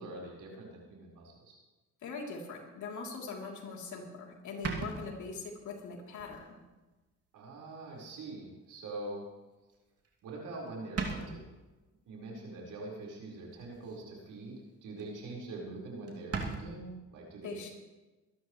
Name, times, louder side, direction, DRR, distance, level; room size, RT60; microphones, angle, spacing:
voice 1, 0.0-1.5 7.3-9.2 10.2-11.4 12.1-17.5, right 2 dB, 90° right, -3 dB, 4.9 m, -44 dB
voice 2, 2.0-6.6 17.4-17.7, left 4 dB, 75° left, 0 dB, 3.5 m, -42 dB
sound 1, 4.6-5.6 6.2-6.4 6.9-7.0 8.3-8.4 10.0-10.4 10.7-10.8 10.9-11.6 13.5-14.0 14.4-14.6 15.0-15.1 15.3-15.4 15.6-15.7 16.1-16.6, right 4 dB, 55° right, 2.7 m, -38 dB
23.5 x 12.5 x 3.3 m, 1.2 s
cardioid pair, 90°, 30 cm